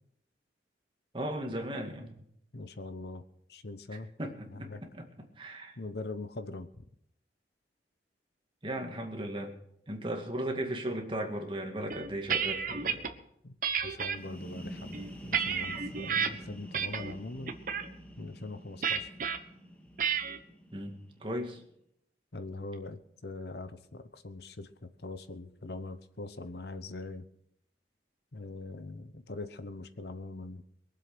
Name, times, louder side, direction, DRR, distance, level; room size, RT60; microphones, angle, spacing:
voice 1, 1.1-2.2 4.2-5.1 5.4-5.8 8.6-9.5 9.9-13.1 20.7-21.6, right 1 dB, 30° right, 2 dB, 2.1 m, -36 dB
voice 2, 2.5-3.2 3.5-4.1 4.5-4.8 5.8-6.8 13.4-13.6 13.8-17.5 18.2-19.1 22.3-27.3 28.3-30.6, left 2 dB, 65° left, 11 dB, 0.9 m, -42 dB
sound 1, 11.9-13.1 13.6-14.2 14.8-16.3 16.7-17.1 17.5-17.9 18.8-19.4 20.0-20.4, right 7 dB, 50° right, 1.2 m, -31 dB
sound 2, 14.0-21.6, equal, 10° left, 2.1 m, -47 dB
22.5 x 7.7 x 6.1 m, 0.74 s
head